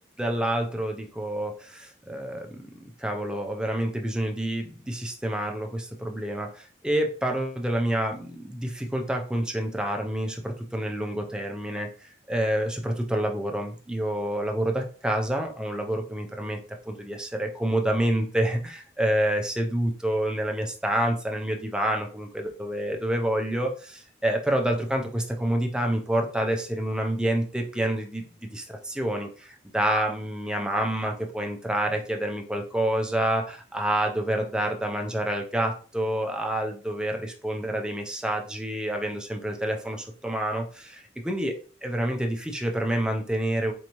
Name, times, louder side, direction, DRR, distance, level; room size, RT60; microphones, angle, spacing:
voice 1, 0.2-2.6 3.0-11.9 12.3-16.6 16.8-41.6 41.8-43.7, right 1 dB, 5° right, 2 dB, 0.5 m, -28 dB
4.4 x 2.7 x 3.0 m, 0.39 s
head